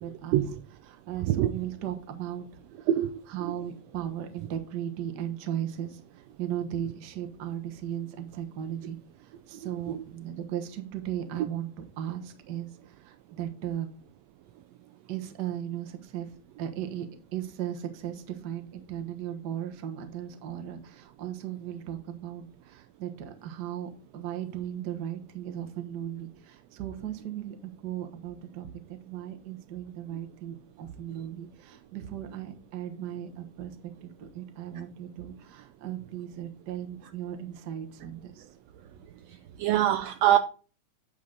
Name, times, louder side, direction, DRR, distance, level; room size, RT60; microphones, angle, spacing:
voice 1, 0.0-0.4 0.8-2.5 2.8-2.9 3.3-9.0 9.5-12.7 13.0-13.9 15.1-17.1 17.3-38.4, right 10 dB, 50° right, 1.3 m, -37 dB
voice 2, 39.6-40.4, right 12 dB, 80° right, 1.6 m, -23 dB
9.3 x 6.6 x 3.8 m
omnidirectional pair, 3.3 m